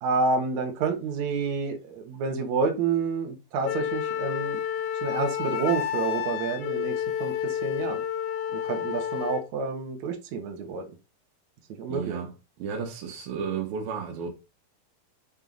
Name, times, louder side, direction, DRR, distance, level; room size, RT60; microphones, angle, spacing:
voice 1, 0.0-4.6 5.0-8.0 8.5-10.8 11.8-12.2, right 4 dB, 60° right, 2.4 m, -29 dB
Wind instrument woodwind instrument, 3.6-9.5, left 9 dB, 80° left, 2.6 m, -30 dB
voice 2, 11.9-14.3, right 6 dB, 75° right, 3.1 m, -33 dB
7.1 x 4.5 x 3.8 m
omnidirectional pair, 4.2 m